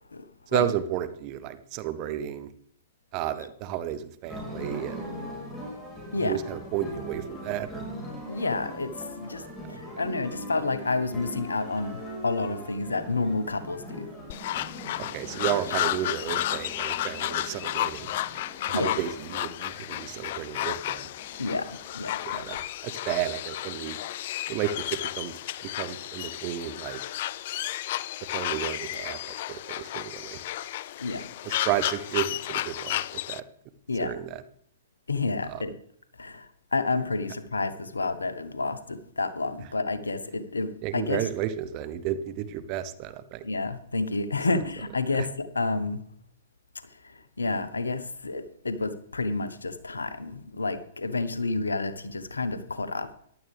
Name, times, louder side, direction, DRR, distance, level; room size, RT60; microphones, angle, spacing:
voice 1, 0.5-2.5 3.1-5.1 6.2-7.9 15.0-18.1 18.7-21.1 22.2-22.6 22.8-24.0 24.5-25.3 25.6-27.0 28.3-29.2 29.5-30.4 31.4-33.4 34.0-34.4 35.5-35.6 40.8-43.4 45.1-45.3, right 11 dB, 40° right, 13 dB, 0.9 m, -32 dB
sound 1, 4.2-22.6, equal, 10° left, 4.7 m, -42 dB
voice 2, 8.3-14.1 18.7-19.0 21.4-21.7 21.9-22.4 31.0-31.3 33.9-34.1 35.1-35.7 36.2-41.3 43.4-46.0 47.1-53.1, left 3 dB, 85° left, 13 dB, 1.0 m, -30 dB
sound 2, 14.3-33.4, left 14 dB, 50° left, 0.4 m, -32 dB
15.5 x 11.0 x 3.4 m, 0.66 s
figure-of-eight pair, 115°, 0 cm